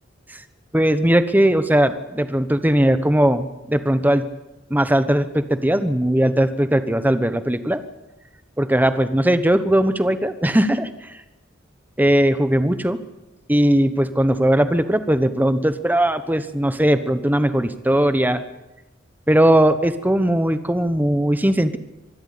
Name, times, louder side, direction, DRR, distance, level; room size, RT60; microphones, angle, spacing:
voice 1, 0.7-4.2 4.7-7.8 8.6-10.9 12.0-13.0 13.5-18.4 19.3-21.8, right 1 dB, 10° right, 11 dB, 1.1 m, -19 dB
25.0 x 13.0 x 8.4 m, 1.0 s
head